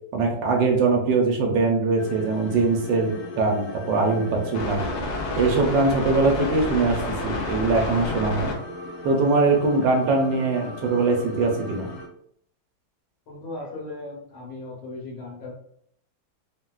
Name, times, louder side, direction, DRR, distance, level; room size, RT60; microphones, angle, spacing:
voice 1, 0.1-4.8 5.4-8.5 9.0-11.9, right 3 dB, 75° right, 1 dB, 1.2 m, -22 dB
sound 1, 2.0-12.1, left 2 dB, 65° left, 1.0 m, -32 dB
voice 2, 13.3-15.5, left 2 dB, 85° left, -2 dB, 1.8 m, -37 dB
3.8 x 2.1 x 2.3 m, 0.67 s
omnidirectional pair, 2.1 m